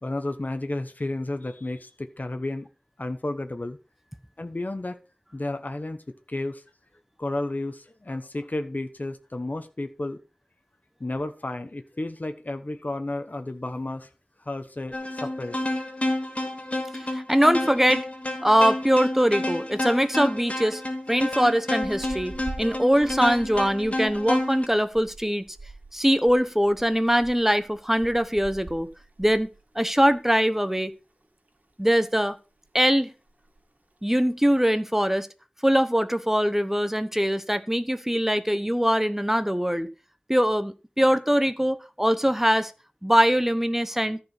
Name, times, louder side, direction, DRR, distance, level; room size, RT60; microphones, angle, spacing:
voice 1, 0.0-2.7 3.0-3.8 4.4-5.0 5.3-6.6 7.2-10.2 11.0-14.1 14.4-15.6, left 2 dB, 65° left, 7 dB, 1.0 m, -32 dB
sound 1, 14.9-24.7, left 1 dB, 45° left, 2.3 m, -30 dB
voice 2, 16.9-18.1 18.4-20.8 21.1-25.4 25.9-28.9 29.2-29.5 29.7-30.9 31.8-32.4 32.7-33.1 34.0-35.3 35.6-39.9 40.3-42.7 43.0-44.2, equal, 10° right, 11 dB, 0.9 m, -22 dB
sound 2, 21.8-30.3 30.6-30.8 31.2-32.1 32.4-32.7 33.0-33.1 33.3-33.7 34.3-34.8, right 2 dB, 65° right, 2.1 m, -45 dB
14.0 x 4.9 x 5.7 m, 0.32 s
wide cardioid pair, 40°, 3 cm